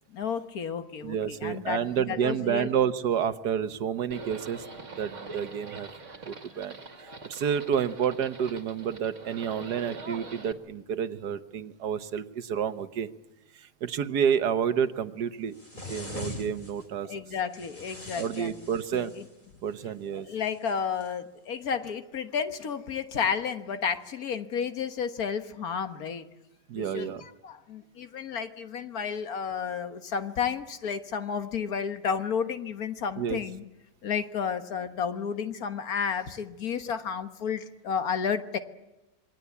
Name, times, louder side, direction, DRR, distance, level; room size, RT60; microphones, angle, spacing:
voice 1, 0.1-1.8 2.1-2.7 17.0-18.7 18.9-19.2 20.1-26.3 26.7-33.6 34.0-38.6, left 6 dB, 60° left, 9 dB, 1.8 m, -32 dB
voice 2, 1.0-4.6 5.0-5.9 6.2-13.1 13.5-15.5 15.9-17.1 18.2-19.1 19.6-20.3 26.7-27.3 33.2-33.4, right 8 dB, 70° right, 11 dB, 1.6 m, -29 dB
Livestock farm animals working animals, 4.1-10.5, right 3 dB, 45° right, 2.4 m, -43 dB
sound 1, 15.5-16.8 17.5-19.3 20.4-21.1, left 2 dB, 25° left, 4.1 m, -42 dB
27.0 x 22.0 x 8.4 m, 1.0 s
omnidirectional pair, 1.9 m